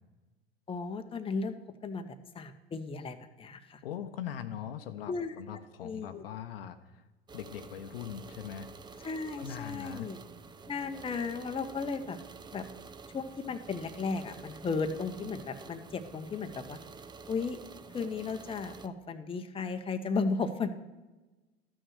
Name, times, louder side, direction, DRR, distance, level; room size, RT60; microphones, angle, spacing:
voice 1, 0.7-2.1 2.3-3.8 5.1-5.4 5.8-6.2 9.0-10.2 10.7-12.2 12.5-12.6 13.1-16.8 17.3-17.6 17.9-20.7, left 4 dB, 20° left, 7 dB, 0.9 m, -35 dB
voice 2, 3.8-7.0 7.3-9.1 9.4-10.1, left 9 dB, 70° left, 9 dB, 0.8 m, -41 dB
sound 1, 7.3-18.9, right 4 dB, 15° right, 0.5 m, -49 dB
13.0 x 6.3 x 6.4 m, 1.1 s
figure-of-eight pair, 80°, 30 cm